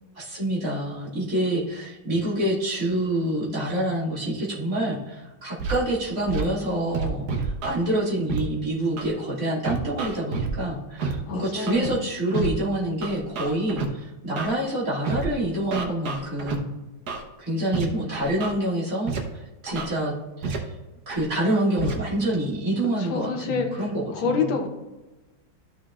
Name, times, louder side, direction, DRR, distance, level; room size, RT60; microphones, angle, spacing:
voice 1, 0.1-16.7 17.4-20.1 20.4-20.6 21.1-24.4, right 1 dB, 45° right, -6 dB, 2.6 m, -27 dB
Scratching (performance technique), 5.6-5.8 6.3-6.4 6.9-7.8 8.3-8.4 9.0-9.1 9.6-10.5 11.0-11.1 11.7-11.9 12.3-12.5 13.0-13.9 14.4-14.5 15.0-15.2 15.7-16.6 17.1-17.2 17.7-17.9 18.1-18.5 19.1-19.2 19.7-19.9 20.4-20.6 21.1-21.2 21.8-21.9, right 5 dB, 60° right, 1.4 m, -29 dB
voice 2, 11.3-12.1 23.0-23.8 24.1-24.7, left 5 dB, 70° left, 3 dB, 1.8 m, -27 dB
12.5 x 6.2 x 2.4 m, 1.1 s
omnidirectional pair, 2.2 m